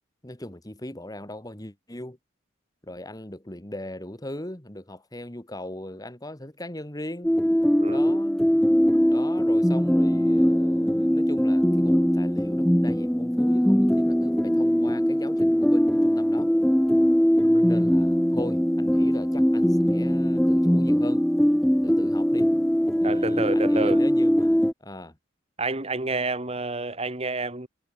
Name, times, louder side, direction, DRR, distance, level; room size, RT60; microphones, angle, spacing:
voice 1, 0.2-2.2 2.8-7.3 7.9-8.4 9.1-16.5 17.7-21.3 21.8-22.5 23.0-25.2, left 1 dB, 20° left, 1.8 m, -39 dB
sound 1, 7.2-24.7, equal, ahead, 0.4 m, -21 dB
voice 2, 7.8-8.2 17.4-17.8 23.0-24.0 25.6-27.7, right 2 dB, 30° right, 2.3 m, -29 dB
head